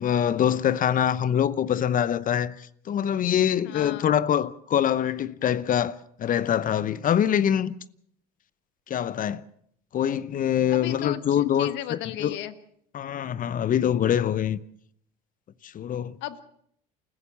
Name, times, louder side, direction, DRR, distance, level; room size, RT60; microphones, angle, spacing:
voice 1, 0.0-7.7 8.9-9.4 9.9-12.4 12.9-14.6 15.6-16.1, left 9 dB, 45° left, 0.9 m, -24 dB
voice 2, 3.6-4.1 10.7-12.5 16.2-16.4, left 12 dB, 65° left, 1.5 m, -35 dB
28.5 x 15.0 x 7.2 m
hypercardioid pair, 75°, 20 cm